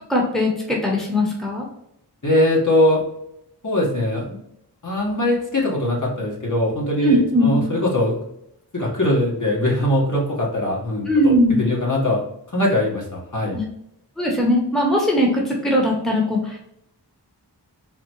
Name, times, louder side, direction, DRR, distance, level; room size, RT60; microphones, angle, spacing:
voice 1, 0.1-1.6 7.0-7.6 11.1-11.6 13.5-13.6 14.2-16.6, left 1 dB, ahead, -1 dB, 1.1 m, -19 dB
voice 2, 2.2-3.0 3.6-4.4 4.8-8.1 8.7-12.2 12.5-13.6, left 1 dB, 45° left, -4 dB, 1.6 m, -21 dB
4.0 x 3.2 x 3.0 m, 0.77 s
wide cardioid pair, 55°, 42 cm